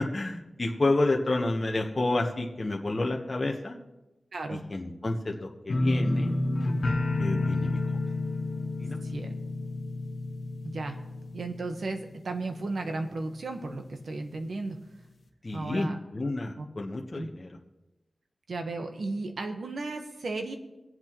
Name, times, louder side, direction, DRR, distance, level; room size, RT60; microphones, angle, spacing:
voice 1, 0.0-3.8 4.7-6.3 7.2-7.8 8.8-9.0 15.4-17.5, left 2 dB, 35° left, 0 dB, 1.2 m, -29 dB
voice 2, 4.3-4.6 9.0-9.3 10.6-11.0 11.3-14.8 15.5-16.0 16.6-16.7 17.1-17.3 18.5-20.6, right 3 dB, 75° right, 5 dB, 1.3 m, -34 dB
sound 1, 5.7-12.6 12.9-13.4 13.8-13.9, left 2 dB, 70° left, 1.5 m, -30 dB
23.5 x 8.0 x 3.1 m, 1.0 s
wide cardioid pair, 85°, 0 cm